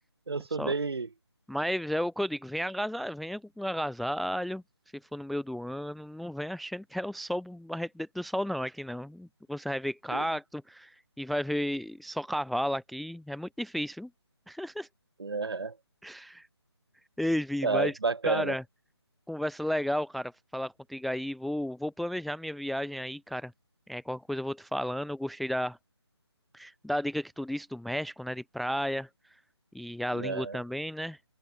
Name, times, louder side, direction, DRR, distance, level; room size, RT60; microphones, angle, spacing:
voice 1, 0.3-1.1 10.1-10.3 15.2-15.8 17.6-18.6 30.1-30.6, right 4 dB, 60° right, 6.4 m, -30 dB
voice 2, 1.5-4.6 5.1-14.1 14.5-14.9 16.0-16.5 17.2-17.9 18.2-18.6 19.3-23.5 23.9-25.8 26.5-29.1 29.7-31.2, equal, ahead, 0.4 m, -33 dB
figure-of-eight pair, 155°, 15 cm